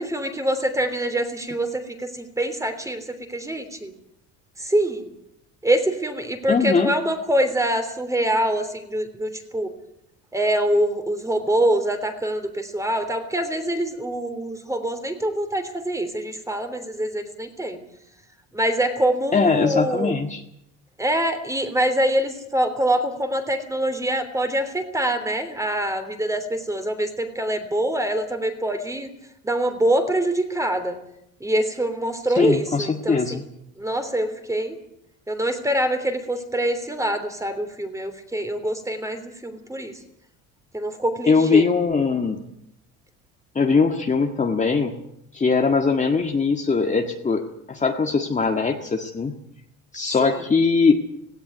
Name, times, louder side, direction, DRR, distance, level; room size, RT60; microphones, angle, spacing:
voice 1, 0.0-3.9 4.6-5.1 5.6-9.7 10.3-17.8 18.5-20.1 21.0-29.1 29.4-31.0 31.4-33.2 33.8-34.8 35.3-39.9 40.7-41.6 50.2-50.3, right 1 dB, 10° right, 8 dB, 3.3 m, -24 dB
voice 2, 6.5-6.9 19.3-20.4 32.3-33.5 41.3-42.4 43.5-45.0 45.3-47.4 47.7-49.4 49.9-51.1, left 4 dB, 20° left, 3 dB, 1.8 m, -21 dB
17.5 x 17.0 x 9.6 m, 0.77 s
cardioid pair, 120°, 33 cm